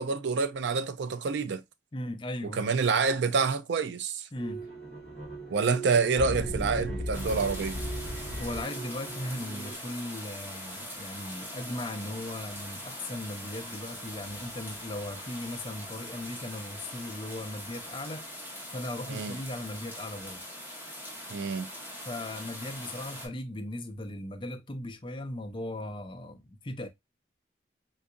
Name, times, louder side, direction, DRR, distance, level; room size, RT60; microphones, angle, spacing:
voice 1, 0.0-1.6 2.4-4.3 5.5-7.8 19.1-19.4 21.3-21.7, right 4 dB, 75° right, 0.4 m, -27 dB
voice 2, 1.9-2.7 4.3-4.7 8.4-18.3 18.7-20.4 22.0-26.9, left 1 dB, 25° left, 0.5 m, -38 dB
sound 1, 4.4-9.8, right 1 dB, 40° right, 1.1 m, -37 dB
sound 2, 7.1-23.3, equal, 10° right, 1.1 m, -42 dB
3.8 x 2.7 x 2.4 m
head